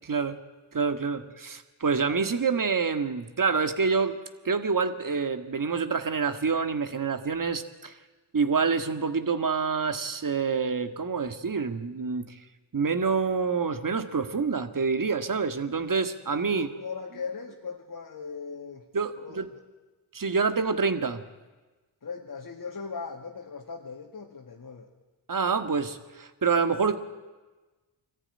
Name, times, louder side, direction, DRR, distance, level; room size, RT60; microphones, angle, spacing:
voice 1, 0.7-4.2 4.5-7.9 8.3-12.4 12.7-16.7 18.9-19.4 20.1-21.2 25.3-27.0, right 5 dB, 40° right, 9 dB, 1.9 m, -27 dB
voice 2, 16.5-18.8 19.2-19.6 22.0-24.9, left 5 dB, 40° left, 0 dB, 2.4 m, -39 dB
21.5 x 14.5 x 9.9 m, 1.2 s
supercardioid pair, 55°, 48 cm